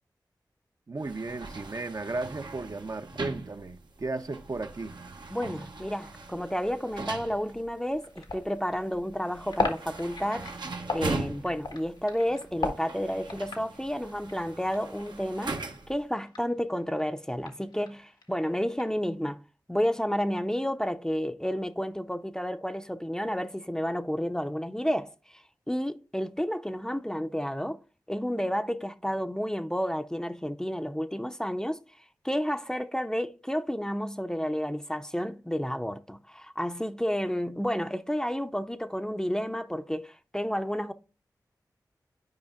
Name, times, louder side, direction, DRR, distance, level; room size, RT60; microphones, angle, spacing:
voice 1, 0.9-5.0, right 3 dB, 50° right, 0.6 m, -35 dB
sound 1, 1.0-16.0, right 3 dB, 75° right, 1.0 m, -41 dB
voice 2, 5.3-10.5 10.9-15.6 15.9-19.4 19.7-27.8 28.1-31.8 32.2-40.9, equal, 10° left, 0.5 m, -31 dB
sound 2, 7.8-16.5 16.7-19.0, left 3 dB, 85° left, 1.2 m, -37 dB
9.6 x 4.8 x 2.4 m
cardioid pair, 40°, 8 cm